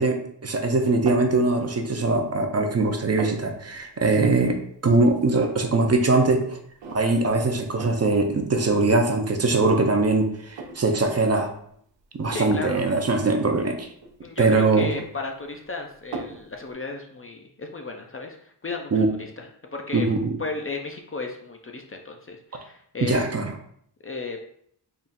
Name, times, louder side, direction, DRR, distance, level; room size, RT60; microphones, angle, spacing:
voice 1, 0.0-4.6 4.8-6.6 6.9-11.5 12.1-13.9 14.4-14.9 18.9-19.1 19.9-20.3 23.0-23.5, right 3 dB, 35° right, 4 dB, 0.5 m, -22 dB
sound 1, 1.1-1.4 1.9-2.6 2.8-3.4 4.2-4.6 4.9-5.0 5.2-5.8 6.2-6.3 6.8-7.3 7.8-8.1 8.9-9.0 9.5-10.8 11.2-11.5 12.3-12.6 13.6-14.2 14.6-15.6 16.1-16.4, right 3 dB, 80° right, 0.7 m, -37 dB
voice 2, 12.3-12.8 14.2-20.1 20.4-23.2 24.0-24.4, left 3 dB, 35° left, 2 dB, 0.4 m, -34 dB
3.6 x 2.3 x 4.1 m, 0.66 s
wide cardioid pair, 110°, 43 cm